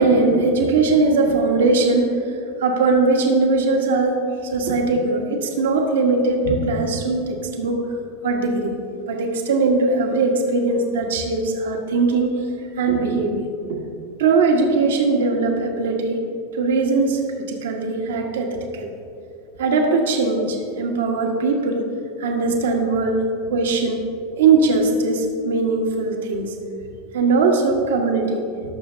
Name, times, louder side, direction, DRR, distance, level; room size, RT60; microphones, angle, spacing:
voice 1, 0.0-2.2 2.6-7.8 8.2-8.8 9.1-12.3 12.8-13.8 14.2-16.2 16.5-18.9 19.6-21.9 22.2-24.0 24.3-26.5 27.1-28.4, right 3 dB, 65° right, 2 dB, 1.3 m, -20 dB
18.5 x 6.9 x 2.7 m, 2.7 s
figure-of-eight pair, 85°, 0 cm